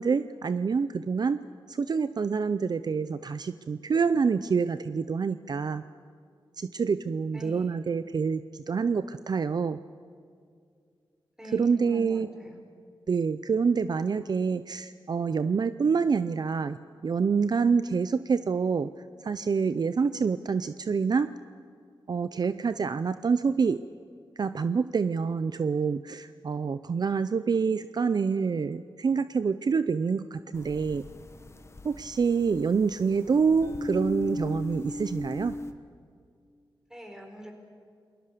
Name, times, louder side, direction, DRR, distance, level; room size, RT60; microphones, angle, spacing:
voice 1, 0.0-1.4 1.7-5.8 6.6-9.8 11.5-12.3 13.1-16.8 17.0-18.9 19.2-21.3 22.1-23.8 24.4-31.0 31.8-35.5, right 5 dB, 50° right, 13 dB, 0.6 m, -27 dB
voice 2, 7.3-7.8 11.4-12.6 36.9-37.5, right 1 dB, 5° right, 3 dB, 4.8 m, -43 dB
sound 1, 30.5-35.7, left 1 dB, 30° left, 1.4 m, -37 dB
28.5 x 20.5 x 6.8 m, 2.2 s
wide cardioid pair, 100°, 9 cm